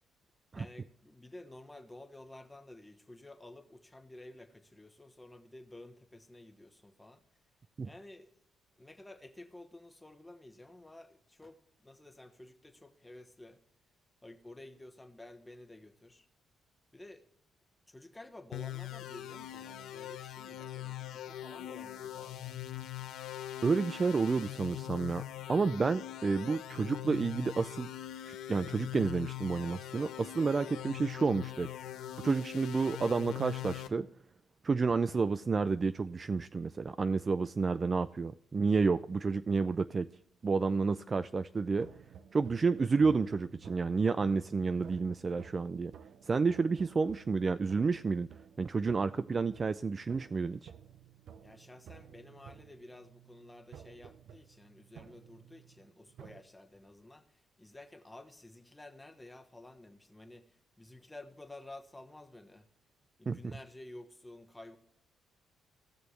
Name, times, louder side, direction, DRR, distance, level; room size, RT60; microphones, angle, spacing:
voice 1, 0.5-7.2 7.8-8.3 8.8-13.6 14.2-16.3 16.9-17.3 17.9-22.6 51.4-62.7 63.2-64.8, left 1 dB, 15° left, 1.2 m, -52 dB
sound 1, 18.5-33.9, left 12 dB, 85° left, 0.8 m, -42 dB
voice 2, 23.6-25.2 25.5-27.9 28.3-31.7 32.2-34.1 34.6-40.1 40.4-41.9 42.3-45.9 46.2-48.3 48.6-50.7 63.3-63.4, right 4 dB, 35° right, 0.3 m, -30 dB
sound 2, 41.8-56.4, right 8 dB, 70° right, 0.6 m, -54 dB
18.0 x 6.3 x 3.2 m
cardioid pair, 90°, 0 cm